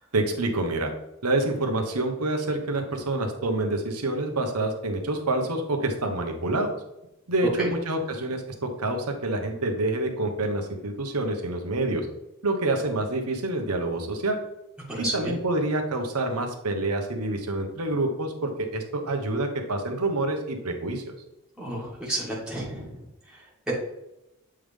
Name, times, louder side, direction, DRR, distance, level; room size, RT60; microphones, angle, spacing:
voice 1, 0.1-0.9 1.2-6.7 7.3-12.1 12.4-14.4 15.0-21.1, right 2 dB, 85° right, 4 dB, 1.0 m, -27 dB
voice 2, 15.0-15.3 21.6-23.0 23.7-23.8, right 1 dB, 5° right, -7 dB, 1.7 m, -31 dB
7.7 x 3.6 x 3.4 m, 0.89 s
head